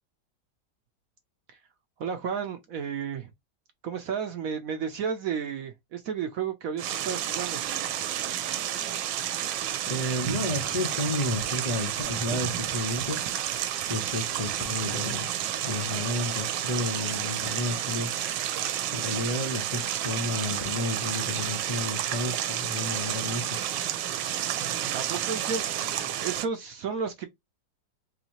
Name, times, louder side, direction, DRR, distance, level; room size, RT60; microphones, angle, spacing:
voice 1, 2.0-3.3 3.8-7.6 24.9-27.2, right 6 dB, 65° right, 0.8 m, -32 dB
sound 1, 6.8-26.5, right 11 dB, 85° right, 1.3 m, -31 dB
voice 2, 9.9-13.2 13.9-18.1 18.9-23.6, left 1 dB, 65° left, 0.3 m, -32 dB
4.0 x 2.6 x 2.9 m
omnidirectional pair, 1.9 m